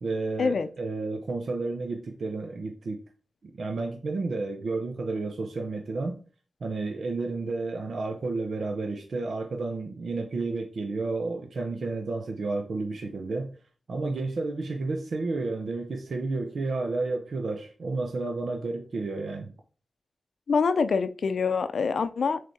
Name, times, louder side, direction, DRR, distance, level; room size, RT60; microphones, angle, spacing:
voice 1, 0.0-3.0 3.6-6.2 6.6-13.5 13.9-19.5, right 3 dB, 75° right, 0.8 m, -31 dB
voice 2, 20.5-22.5, left 5 dB, 80° left, 0.5 m, -25 dB
7.6 x 3.4 x 4.1 m
cardioid pair, 50°, 0 cm